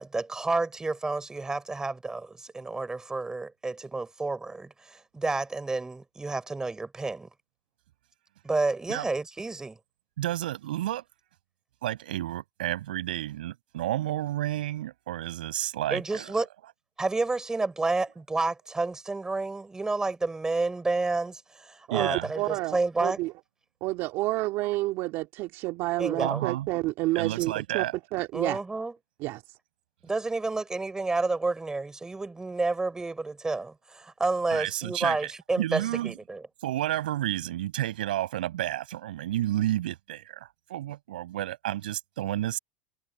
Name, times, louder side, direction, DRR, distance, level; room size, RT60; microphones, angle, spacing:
voice 1, 0.0-7.3 8.4-9.8 15.9-16.5 17.0-23.2 26.0-26.4 28.3-28.9 30.0-36.4, right 3 dB, 10° right, 4.7 m, -30 dB
voice 2, 10.2-11.0 11.8-16.3 21.9-22.3 26.2-26.7 27.1-27.9 34.5-35.2 35.6-36.1 36.6-42.6, right 14 dB, 80° right, 6.6 m, -31 dB
voice 3, 21.9-23.3 23.8-27.8 28.1-28.6 29.2-29.4, right 20 dB, 55° right, 2.1 m, -29 dB
hypercardioid pair, 95°, 5 cm